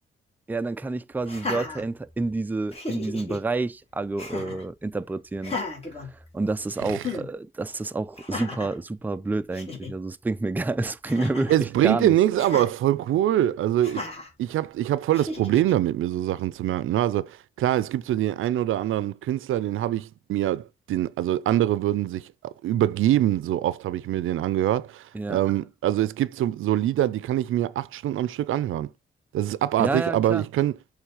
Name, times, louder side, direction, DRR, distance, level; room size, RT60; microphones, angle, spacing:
voice 1, 0.5-5.6 6.1-12.2 25.1-25.4 29.8-30.5, right 3 dB, 10° right, 0.4 m, -29 dB
Laughter, 1.2-2.3 2.7-3.4 4.2-4.7 5.4-6.6 7.0-7.3 8.2-8.8 9.3-9.4 9.5-9.9 11.0-11.6 12.4-12.7 13.8-14.3 15.1-15.7, left 3 dB, 30° left, 2.5 m, -35 dB
voice 2, 11.5-14.1 14.4-28.9 29.3-30.8, right 12 dB, 90° right, 0.5 m, -24 dB
6.4 x 3.3 x 4.8 m
cardioid pair, 105°, 20 cm